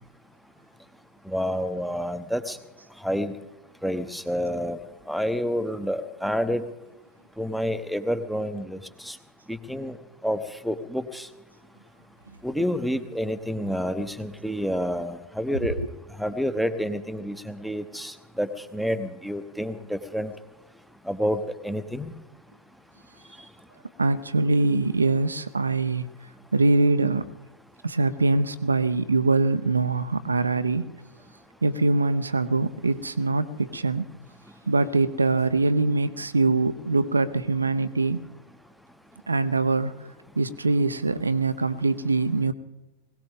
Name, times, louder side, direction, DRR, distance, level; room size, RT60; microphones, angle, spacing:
voice 1, 1.2-2.6 3.0-3.3 3.8-4.8 5.1-6.6 7.4-9.2 9.5-10.0 10.2-11.3 12.4-15.8 16.2-20.3 21.0-22.1, equal, ahead, 11 dB, 1.1 m, -29 dB
voice 2, 24.0-26.1 26.5-27.3 27.8-30.9 31.6-34.1 34.7-38.3 39.3-39.9 40.4-42.5, right 3 dB, 80° right, 13 dB, 0.7 m, -23 dB
21.0 x 18.0 x 3.7 m, 1.1 s
figure-of-eight pair, 90°, 0 cm